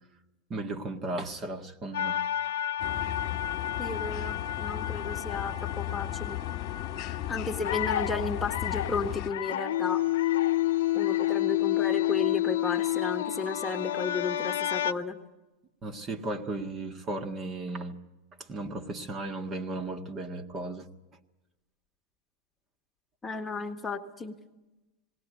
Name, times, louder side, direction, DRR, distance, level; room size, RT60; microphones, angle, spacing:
voice 1, 0.5-2.2 15.8-18.0 18.4-20.9, right 2 dB, 30° right, 3 dB, 1.7 m, -35 dB
sound 1, 1.9-14.9, left 13 dB, 75° left, 0.7 m, -30 dB
sound 2, 2.8-9.3, left 13 dB, 45° left, 1.7 m, -35 dB
voice 2, 3.8-6.4 7.3-10.0 10.9-15.2 23.2-24.4, left 4 dB, 15° left, 4 dB, 1.7 m, -33 dB
20.0 x 17.5 x 9.4 m, 1.1 s
hypercardioid pair, 105°, 0 cm